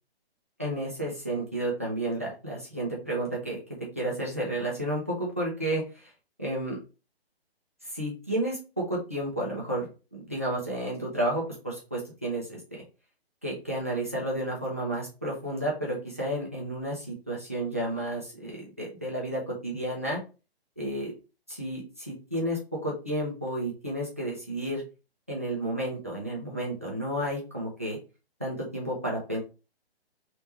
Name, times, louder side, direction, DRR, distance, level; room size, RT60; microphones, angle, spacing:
voice 1, 0.6-3.6 3.9-6.1 6.4-6.8 7.9-12.8 13.4-20.2 20.8-21.1 21.5-24.8 25.3-28.0 28.4-29.4, right 1 dB, 15° right, -3 dB, 0.5 m, -31 dB
3.3 x 3.3 x 4.0 m, 0.31 s
hypercardioid pair, 180°, 32 cm